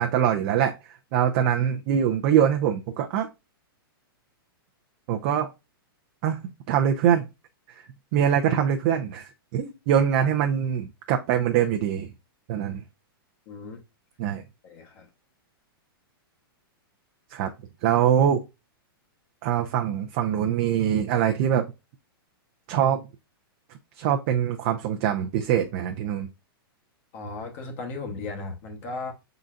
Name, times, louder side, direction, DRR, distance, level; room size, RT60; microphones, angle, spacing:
voice 1, 0.0-3.3 5.1-5.5 6.2-7.3 7.7-7.8 8.1-12.1 12.5-12.8 14.2-14.4 17.3-17.5 17.8-18.4 19.4-21.7 22.7-23.0 24.0-26.3, right 9 dB, 40° right, 0.6 m, -23 dB
voice 2, 13.5-13.8 14.6-15.1 27.1-29.1, left 3 dB, 40° left, 1.0 m, -36 dB
5.5 x 3.9 x 2.4 m
hypercardioid pair, 150°, 13 cm